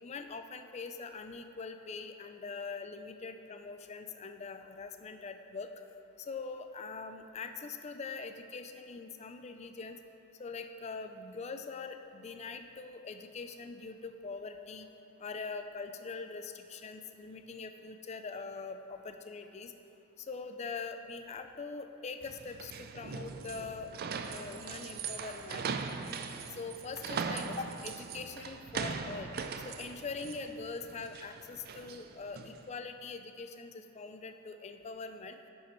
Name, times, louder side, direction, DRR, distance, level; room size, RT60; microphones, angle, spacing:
voice 1, 0.0-5.7 6.3-10.0 10.4-14.9 15.2-19.7 20.2-23.9 24.2-25.7 26.5-29.3 29.6-35.4, left 4 dB, 30° left, 8 dB, 0.4 m, -43 dB
sound 1, 22.2-32.6, right 5 dB, 45° right, 0.4 m, -40 dB
10.5 x 5.6 x 4.3 m, 2.8 s
head